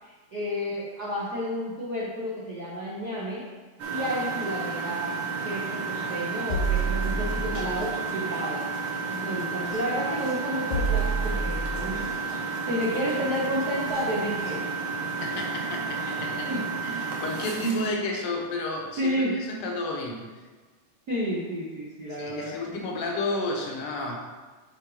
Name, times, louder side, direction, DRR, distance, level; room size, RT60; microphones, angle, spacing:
voice 1, 0.0-3.4 3.9-5.1 5.4-8.6 9.1-12.0 12.7-14.8 16.5-16.6 19.0-19.4 21.1-22.8, equal, 80° right, -7 dB, 0.8 m, -31 dB
Engine, 3.8-17.9, right 4 dB, 55° right, 1.5 m, -32 dB
sound 1, 6.5-7.8 9.6-9.8 10.7-12.0 13.9-14.0 14.5-14.6, right 3 dB, 90° left, 3.1 m, -28 dB
voice 2, 15.2-16.6 16.8-20.4 22.1-24.2, left 2 dB, 60° left, 0 dB, 1.6 m, -31 dB
9.9 x 3.8 x 4.9 m, 1.4 s
omnidirectional pair, 3.9 m